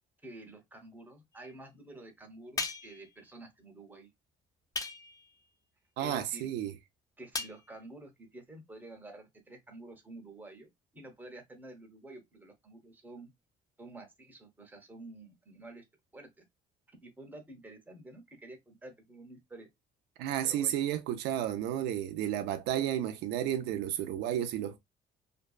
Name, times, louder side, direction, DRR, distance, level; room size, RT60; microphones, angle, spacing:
voice 1, 0.2-4.1 6.0-6.5 7.2-13.3 13.8-15.8 16.1-16.4 17.0-19.7 20.4-20.8, right 2 dB, 10° right, 0.7 m, -50 dB
sound 1, 2.6-3.1 4.8-5.3 7.3-7.6, left 4 dB, 20° left, 0.4 m, -36 dB
voice 2, 6.0-6.7 20.2-24.8, right 11 dB, 85° right, 0.4 m, -32 dB
2.6 x 2.2 x 2.3 m
cardioid pair, 110°, 17 cm